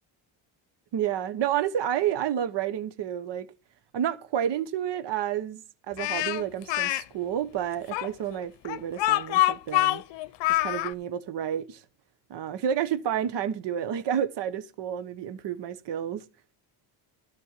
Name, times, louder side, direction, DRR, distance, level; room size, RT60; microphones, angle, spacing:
voice 1, 0.9-3.5 3.9-5.6 5.9-10.0 10.5-11.8 12.3-16.2, right 9 dB, 60° right, 1.1 m, -30 dB
Speech, 6.0-7.0 7.9-10.9, left 16 dB, 70° left, 0.7 m, -25 dB
12.5 x 4.5 x 8.1 m
cardioid pair, 100°, 47 cm